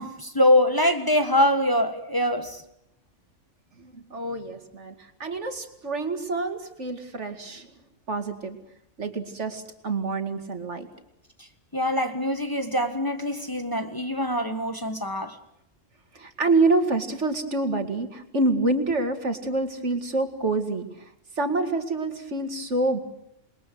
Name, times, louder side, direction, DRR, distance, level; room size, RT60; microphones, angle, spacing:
voice 1, 0.0-2.6 11.7-15.4, left 1 dB, 15° left, 1.6 m, -24 dB
voice 2, 3.8-7.7 8.1-8.6 9.0-10.9 16.1-21.0 21.4-23.0, right 2 dB, 70° right, 2.6 m, -27 dB
28.0 x 21.5 x 7.8 m
omnidirectional pair, 1.3 m